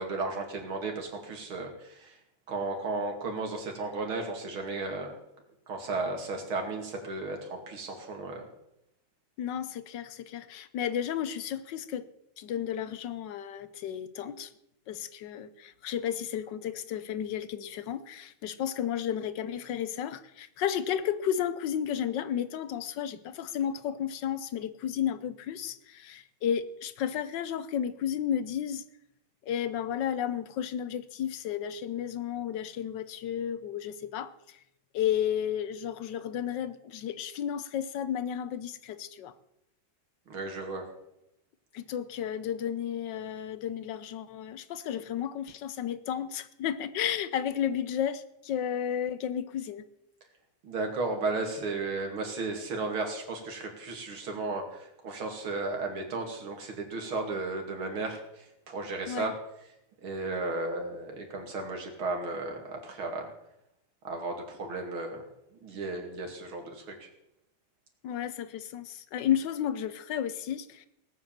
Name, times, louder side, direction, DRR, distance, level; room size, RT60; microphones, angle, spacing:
voice 1, 0.0-2.1 2.5-5.2 5.7-8.5 40.3-40.8 50.6-58.2 58.7-59.3 60.0-63.3 64.0-65.2 65.6-67.0, right 3 dB, 90° right, 3.3 m, -34 dB
voice 2, 9.4-12.1 12.4-14.5 14.9-28.8 29.5-34.3 34.9-39.3 41.7-49.9 59.1-59.3 68.0-70.9, left 9 dB, 65° left, 1.4 m, -33 dB
18.0 x 7.9 x 7.3 m
omnidirectional pair, 2.2 m